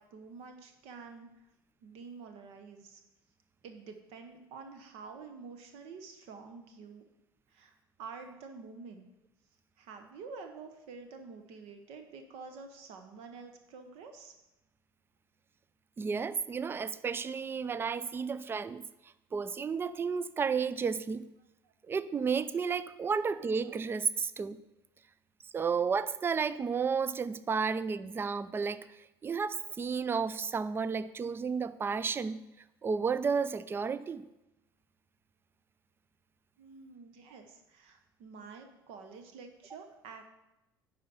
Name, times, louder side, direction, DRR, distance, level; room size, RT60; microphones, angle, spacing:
voice 1, 0.0-1.5 1.8-3.0 3.6-7.0 7.5-7.7 8.0-9.1 9.8-14.3 21.6-21.7 36.6-40.3, right 4 dB, 55° right, 6 dB, 0.9 m, -48 dB
voice 2, 16.0-18.8 19.3-21.3 21.9-24.6 25.5-28.9 29.2-32.4 32.8-34.2, right 5 dB, 20° right, 16 dB, 0.4 m, -32 dB
10.0 x 4.3 x 5.5 m, 0.93 s
figure-of-eight pair, 65°, 12 cm